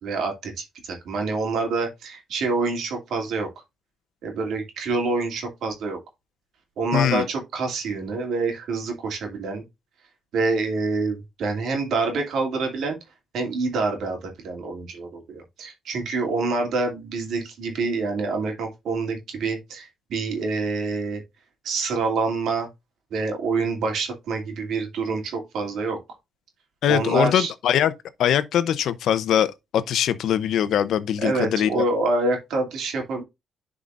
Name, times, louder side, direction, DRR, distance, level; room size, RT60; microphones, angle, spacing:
voice 1, 0.0-3.5 4.2-6.0 6.8-9.6 10.3-13.0 13.3-21.2 21.6-22.7 23.1-26.0 26.9-27.5 31.2-33.2, right 3 dB, 75° right, 2.6 m, -26 dB
voice 2, 6.9-7.3 26.8-27.9 28.2-31.7, left 10 dB, 75° left, 0.7 m, -22 dB
11.0 x 4.9 x 2.5 m
cardioid pair, 90°, 0 cm